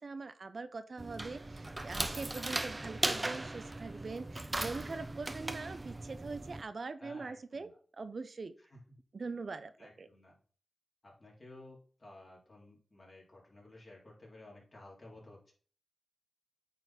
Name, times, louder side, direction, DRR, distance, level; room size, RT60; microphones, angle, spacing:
voice 1, 0.0-7.7 8.0-8.5 9.1-10.1, right 4 dB, 60° right, 11 dB, 0.6 m, -42 dB
sound 1, 1.0-6.6, right 2 dB, 25° right, 0.7 m, -38 dB
voice 2, 4.6-5.0 7.0-7.7 8.6-8.8 9.8-10.4 11.0-15.5, left 1 dB, 40° left, -3 dB, 3.6 m, -55 dB
9.0 x 4.1 x 4.3 m, 0.43 s
wide cardioid pair, 70°, 0 cm